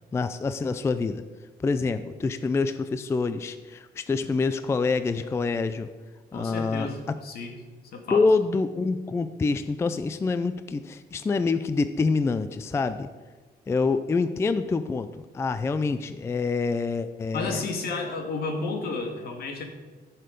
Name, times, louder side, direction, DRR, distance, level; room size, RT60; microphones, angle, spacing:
voice 1, 0.1-1.2 1.6-5.9 6.3-7.2 8.1-13.1 13.7-17.6, left 4 dB, 15° left, 12 dB, 0.3 m, -26 dB
voice 2, 6.3-7.5 7.9-8.2 17.3-19.6, left 3 dB, 70° left, 4 dB, 1.9 m, -32 dB
14.0 x 6.7 x 5.1 m, 1.3 s
cardioid pair, 165°, 17 cm